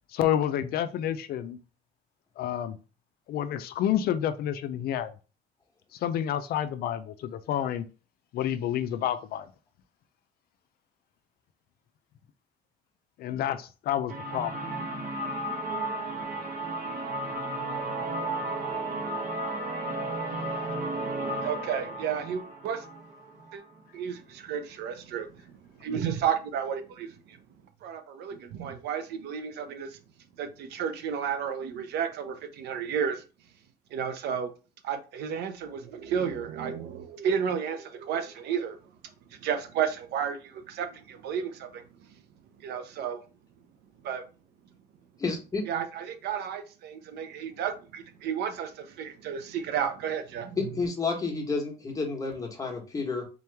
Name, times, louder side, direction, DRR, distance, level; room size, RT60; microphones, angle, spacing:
voice 1, 0.1-1.6 2.4-2.8 3.3-5.1 6.0-7.8 8.3-9.5 13.2-14.5 20.4-20.5, left 10 dB, 65° left, 0.4 m, -29 dB
sound 1, 14.1-23.8, right 2 dB, 55° right, 1.4 m, -33 dB
voice 2, 21.4-22.8 23.5-23.6 23.9-27.4 27.8-30.0 30.4-33.2 33.9-34.5 34.8-38.8 39.3-41.9 42.6-43.2 44.0-44.2 45.7-50.6, right 8 dB, 75° right, 0.7 m, -32 dB
voice 3, 45.2-45.6 50.6-53.3, left 4 dB, 20° left, 1.3 m, -30 dB
3.8 x 3.0 x 3.3 m
cardioid pair, 110°, 17 cm